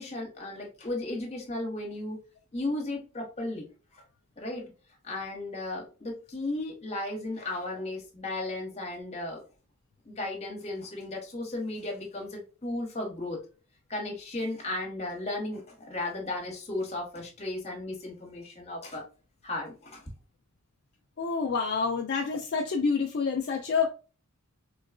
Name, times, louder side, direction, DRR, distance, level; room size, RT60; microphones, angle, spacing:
voice 1, 0.0-2.2 2.5-3.7 3.9-4.0 4.4-4.7 5.0-9.4 10.0-13.4 13.9-19.0 19.4-20.0, left 2 dB, 30° left, 1.1 m, -35 dB
voice 2, 21.2-23.9, left 5 dB, 45° left, 0.4 m, -28 dB
3.8 x 2.3 x 2.4 m
head